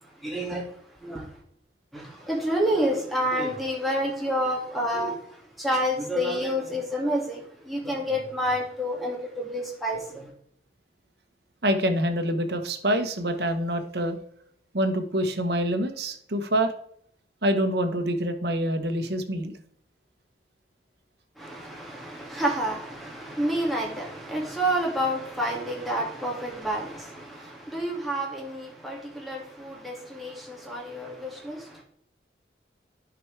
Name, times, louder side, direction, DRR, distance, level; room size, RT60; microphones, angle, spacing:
voice 1, 0.2-1.4 1.9-10.3 21.4-31.8, equal, ahead, 2.1 m, -29 dB
voice 2, 11.6-14.2 14.7-16.7 17.4-19.5, right 1 dB, 65° right, 1.1 m, -26 dB
10.5 x 6.0 x 3.3 m
head